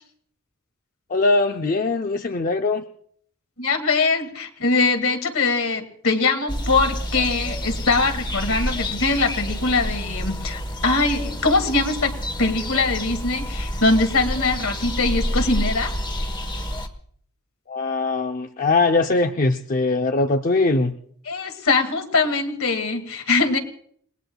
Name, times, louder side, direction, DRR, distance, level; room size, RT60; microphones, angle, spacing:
voice 1, 1.1-2.8 17.7-20.9, left 3 dB, 40° left, 5 dB, 0.6 m, -21 dB
voice 2, 3.6-12.1 12.4-15.9 21.3-23.6, left 3 dB, 70° left, 6 dB, 2.1 m, -22 dB
sound 1, 6.5-16.9, equal, 20° left, 1.2 m, -28 dB
30.0 x 19.0 x 2.3 m, 0.63 s
head